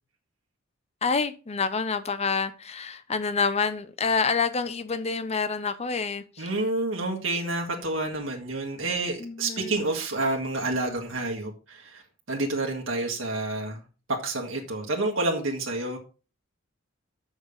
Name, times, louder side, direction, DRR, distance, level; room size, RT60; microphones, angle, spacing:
voice 1, 1.0-6.5 9.2-9.8, left 5 dB, 30° left, 0.7 m, -27 dB
voice 2, 6.4-12.0 12.3-13.8 14.1-16.0, right 2 dB, 70° right, 1.6 m, -29 dB
6.9 x 6.4 x 5.3 m
head